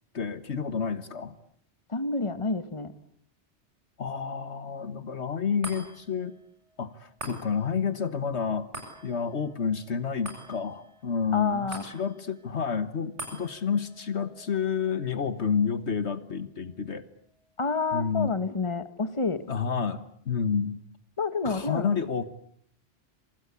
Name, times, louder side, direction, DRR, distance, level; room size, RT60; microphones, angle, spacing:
voice 1, 0.1-1.3 4.0-6.4 6.8-8.7 9.0-17.1 17.9-18.3 19.5-20.8 21.4-22.2, left 6 dB, 70° left, 13 dB, 1.7 m, -29 dB
voice 2, 1.9-2.9 11.3-11.8 17.6-19.4 21.2-21.9, left 4 dB, 25° left, 12 dB, 1.6 m, -29 dB
sound 1, 5.6-18.2 18.7-18.8, right 1 dB, 70° right, 7.7 m, -47 dB
27.0 x 25.0 x 8.4 m, 0.65 s
omnidirectional pair, 1.2 m